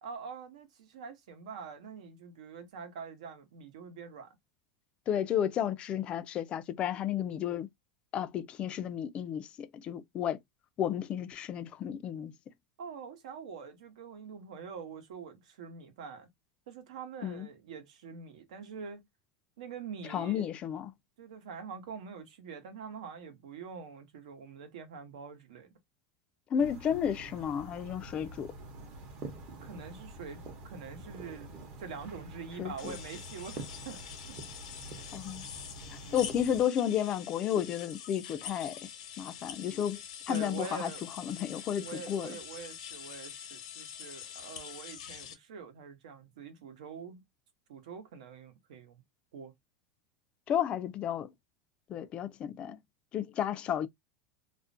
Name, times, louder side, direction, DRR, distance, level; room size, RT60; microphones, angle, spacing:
voice 1, 0.0-4.4 12.8-16.3 16.7-19.0 19.6-20.5 21.2-25.7 29.6-31.5 31.8-34.1 36.0-36.3 40.3-41.0 41.8-47.2 47.7-49.0 49.3-49.5, right 6 dB, 85° right, 0.8 m, -45 dB
voice 2, 5.1-7.7 8.1-9.5 9.8-10.4 10.8-12.3 17.2-17.5 20.1-20.9 26.5-28.5 32.6-32.9 35.1-35.4 36.1-38.7 39.2-40.0 40.3-40.9 41.3-42.3 50.5-51.3 51.9-52.8 53.1-53.9, left 9 dB, 30° left, 0.3 m, -32 dB
sound 1, 26.6-36.6, right 2 dB, 40° right, 0.7 m, -47 dB
sound 2, 32.8-45.3, left 9 dB, 85° left, 0.8 m, -45 dB
2.4 x 2.1 x 2.5 m
supercardioid pair, 145°, 4 cm